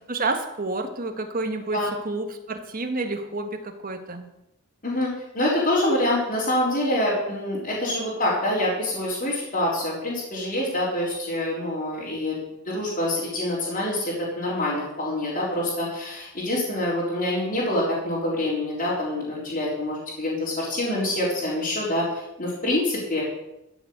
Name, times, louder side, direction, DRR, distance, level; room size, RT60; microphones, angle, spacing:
voice 1, 0.1-4.3, right 3 dB, 40° right, 6 dB, 1.5 m, -29 dB
voice 2, 5.3-12.4 12.6-23.2, left 1 dB, 40° left, -8 dB, 4.0 m, -26 dB
14.0 x 7.1 x 7.9 m, 0.88 s
head